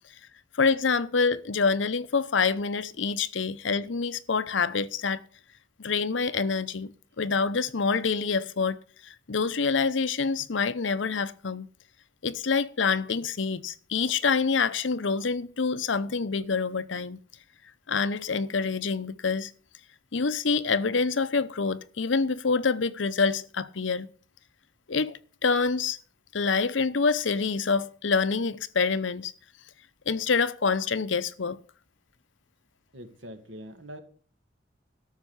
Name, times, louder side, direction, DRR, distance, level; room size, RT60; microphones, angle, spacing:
voice 1, 0.5-5.2 5.8-6.9 7.2-8.8 9.0-11.7 12.2-17.2 17.9-19.5 20.1-24.1 24.9-26.0 26.3-29.3 30.1-31.6, left 5 dB, 90° left, 0.8 m, -26 dB
voice 2, 32.9-34.0, equal, 85° right, 2.2 m, -43 dB
13.0 x 6.6 x 8.1 m
head